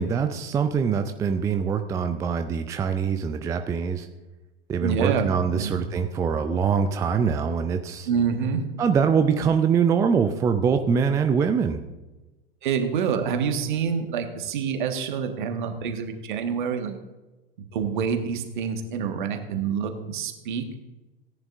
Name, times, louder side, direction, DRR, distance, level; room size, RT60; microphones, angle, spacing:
voice 1, 0.0-4.1 4.7-8.1 8.8-11.8, right 6 dB, 10° right, 7 dB, 0.4 m, -23 dB
voice 2, 4.8-5.7 8.1-8.6 12.6-17.0 17.7-20.7, right 6 dB, 55° right, 6 dB, 1.6 m, -27 dB
17.5 x 10.5 x 2.6 m, 1.1 s
figure-of-eight pair, 95°, 30 cm